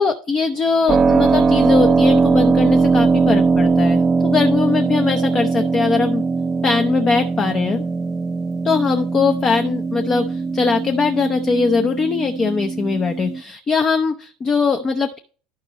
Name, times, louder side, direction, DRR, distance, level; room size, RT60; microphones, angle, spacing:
voice 1, 0.0-6.2 6.6-7.8 8.6-15.2, left 4 dB, 25° left, 5 dB, 0.7 m, -20 dB
Keyboard (musical), 0.9-13.4, right 4 dB, 20° right, 0.5 m, -19 dB
12.0 x 5.3 x 3.0 m, 0.39 s
supercardioid pair, 140°, 3 cm